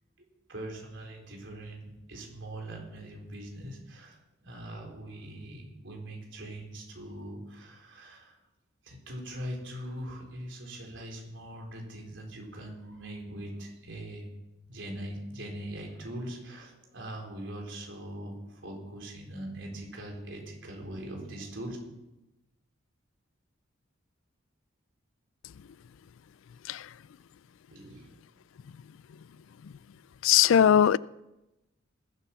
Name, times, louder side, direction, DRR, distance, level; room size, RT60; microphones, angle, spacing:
voice 1, 0.2-8.4 8.8-14.3 14.7-21.8 27.7-28.1, right 1 dB, 70° right, 4.0 m, -41 dB
voice 2, 30.2-31.0, left 9 dB, 80° left, 0.4 m, -19 dB
20.5 x 8.2 x 5.8 m
head